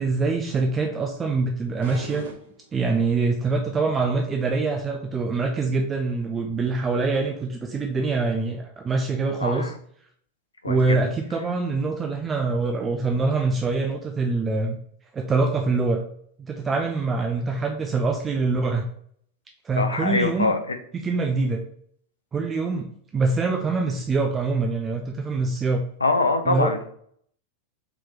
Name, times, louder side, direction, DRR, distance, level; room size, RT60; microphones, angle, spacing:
voice 1, 0.0-2.2 2.7-9.7 10.6-14.8 15.1-16.0 16.4-18.9 19.6-20.5 21.0-21.6 22.3-22.9 23.1-25.8 26.5-26.7, right 3 dB, 20° right, 2 dB, 0.3 m, -24 dB
sound 1, 1.8-3.3, right 3 dB, 60° right, 0.7 m, -40 dB
voice 2, 9.4-9.7 10.6-11.0 19.8-20.8 26.0-26.9, left 3 dB, 80° left, 7 dB, 0.3 m, -23 dB
3.4 x 2.9 x 2.2 m, 0.64 s
figure-of-eight pair, 90°, 0 cm